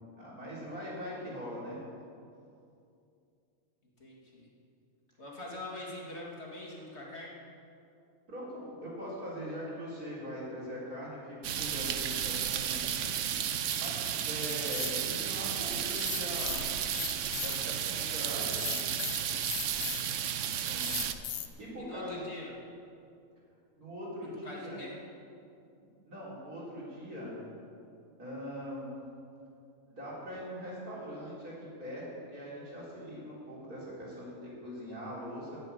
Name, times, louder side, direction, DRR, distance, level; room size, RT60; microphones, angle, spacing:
voice 1, 0.2-1.8 8.3-16.6 17.4-18.7 20.6-21.1 21.6-22.2 23.8-24.8 26.0-27.3 28.2-28.9 29.9-32.0 32.3-35.6, equal, 80° right, -7 dB, 4.3 m, -42 dB
voice 2, 4.0-4.5 5.2-7.4 19.5-19.8 21.8-22.5 24.4-24.9, left 2 dB, 45° left, -3 dB, 2.4 m, -43 dB
sound 1, 11.4-21.1, right 9 dB, 65° right, 0.9 m, -33 dB
sound 2, 14.5-14.9 15.9-17.6 18.5-20.1 20.5-21.5, left 10 dB, 70° left, 1.1 m, -37 dB
11.5 x 7.7 x 9.0 m, 2.5 s
omnidirectional pair, 1.6 m